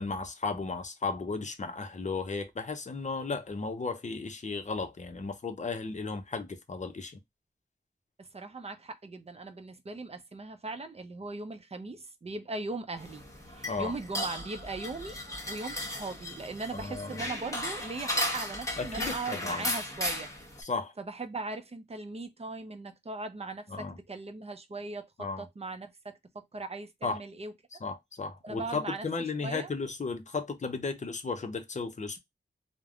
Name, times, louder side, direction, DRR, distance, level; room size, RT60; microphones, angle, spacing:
voice 1, 0.0-7.2 13.7-13.9 16.7-17.2 18.8-19.7 20.6-20.9 23.7-24.0 25.2-25.5 27.0-27.2 27.8-32.2, left 4 dB, 40° left, 0.6 m, -35 dB
voice 2, 8.2-13.2 13.5-15.2 15.5-20.3 21.0-25.1 25.4-26.2 26.5-27.5 28.4-29.1 29.4-29.7, right 3 dB, 35° right, 0.6 m, -39 dB
sound 1, 13.0-20.6, left 1 dB, 15° left, 1.1 m, -36 dB
3.2 x 2.1 x 2.2 m
wide cardioid pair, 95°, 19 cm